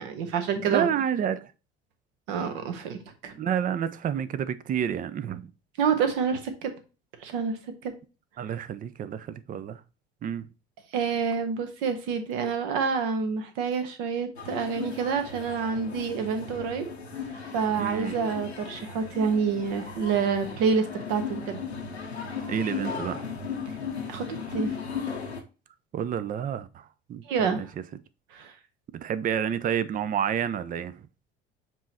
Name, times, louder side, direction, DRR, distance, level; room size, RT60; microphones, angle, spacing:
voice 1, 0.0-0.9 2.3-3.3 5.8-6.7 7.2-7.6 7.8-7.9 10.9-16.9 17.5-21.6 24.1-24.7 27.3-27.7 28.3-28.5, right 6 dB, 60° right, 1.3 m, -28 dB
voice 2, 0.6-1.5 3.3-5.5 8.4-9.8 10.2-10.5 17.8-18.1 22.5-23.3 25.9-26.8 27.1-27.2 27.5-27.7 28.9-30.9, right 8 dB, 25° right, 0.5 m, -29 dB
sound 1, 14.4-25.4, left 6 dB, 85° left, 1.0 m, -36 dB
7.3 x 3.1 x 4.1 m
figure-of-eight pair, 60°, 32 cm